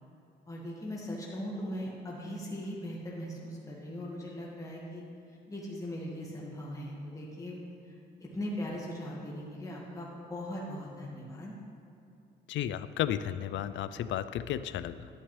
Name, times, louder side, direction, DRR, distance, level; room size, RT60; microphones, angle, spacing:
voice 1, 0.5-5.0 5.5-7.6 7.8-11.5, equal, 15° left, -4 dB, 1.7 m, -39 dB
voice 2, 12.5-15.1, left 11 dB, 70° left, 13 dB, 0.4 m, -33 dB
11.0 x 9.0 x 3.3 m, 2.7 s
cardioid pair, 90°, 20 cm